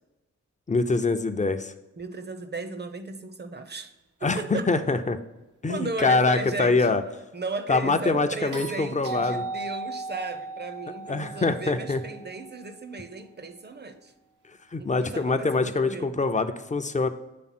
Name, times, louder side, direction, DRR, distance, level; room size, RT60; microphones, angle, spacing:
voice 1, 0.7-1.7 4.2-5.2 5.6-7.0 7.7-9.4 11.1-12.0 14.7-17.1, left 3 dB, 25° left, 8 dB, 0.6 m, -24 dB
voice 2, 2.0-3.9 4.2-4.7 5.7-7.0 7.3-14.1 14.8-16.2, right 3 dB, 35° right, 9 dB, 0.8 m, -36 dB
sound 1, 8.5-12.8 15.0-15.1, right 3 dB, 85° right, 1.0 m, -37 dB
8.5 x 3.4 x 4.3 m, 1.1 s
cardioid pair, 45°, 30 cm